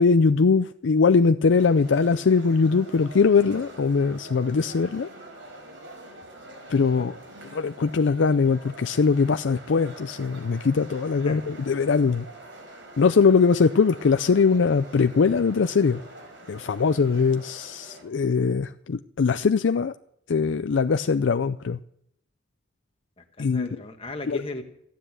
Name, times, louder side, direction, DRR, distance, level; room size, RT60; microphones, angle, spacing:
voice 1, 0.0-5.1 6.7-7.2 7.5-12.3 13.0-16.0 16.5-19.9 20.3-21.8 23.4-23.7 24.3-24.4, left 5 dB, 80° left, 10 dB, 0.5 m, -21 dB
sound 1, 1.5-18.0, right 1 dB, 80° right, 4.8 m, -45 dB
voice 2, 23.2-24.6, left 2 dB, 30° left, 5 dB, 1.4 m, -36 dB
15.0 x 10.0 x 7.5 m, 0.74 s
head